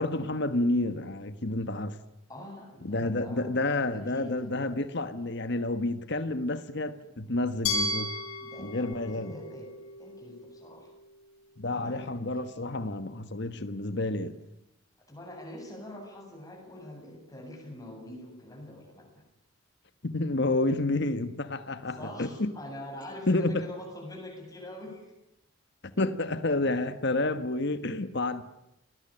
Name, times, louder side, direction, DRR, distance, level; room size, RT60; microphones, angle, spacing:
voice 1, 0.0-2.0 2.8-8.1 8.6-9.3 11.6-14.4 20.0-22.6 23.3-23.6 26.0-28.4, left 2 dB, 55° left, 1.4 m, -29 dB
voice 2, 2.3-4.5 8.4-9.7 10.0-10.9 11.6-12.1 15.1-19.2 21.9-25.1, left 1 dB, 15° left, 7.7 m, -44 dB
Glass, 7.7-10.6, left 2 dB, 85° left, 6.2 m, -34 dB
29.0 x 19.0 x 8.9 m
head